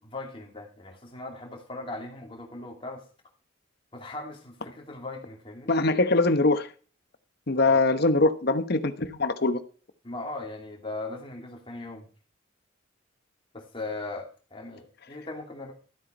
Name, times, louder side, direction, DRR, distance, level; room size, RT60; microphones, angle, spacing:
voice 1, 0.1-3.0 3.9-5.7 7.6-7.8 10.0-12.1 13.5-15.7, left 2 dB, 25° left, 2.8 m, -39 dB
voice 2, 5.7-6.7 7.5-9.6, left 2 dB, 50° left, 1.0 m, -22 dB
13.5 x 8.2 x 4.5 m
head